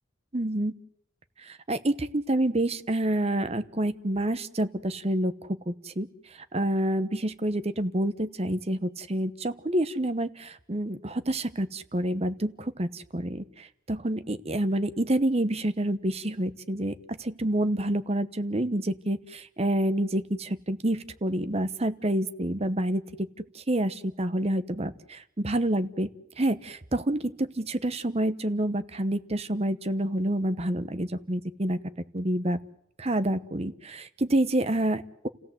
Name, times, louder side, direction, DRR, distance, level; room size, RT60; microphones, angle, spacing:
voice 1, 0.3-0.7 1.4-6.1 6.5-23.0 23.5-26.1 26.4-31.8 32.1-32.6 33.0-35.3, right 1 dB, 30° right, 11 dB, 1.0 m, -28 dB
29.5 x 16.5 x 7.8 m, 0.78 s
head